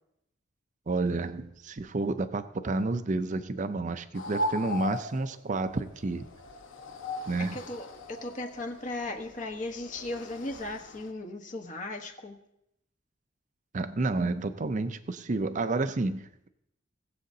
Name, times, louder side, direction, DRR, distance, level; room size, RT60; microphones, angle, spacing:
voice 1, 0.9-6.3 7.3-7.6 13.7-16.5, right 3 dB, 40° right, 10 dB, 0.5 m, -30 dB
sound 1, 4.1-11.1, left 1 dB, 90° left, 1.0 m, -38 dB
voice 2, 7.5-12.4, left 2 dB, 40° left, 3 dB, 1.2 m, -37 dB
20.0 x 7.6 x 2.8 m, 0.81 s
head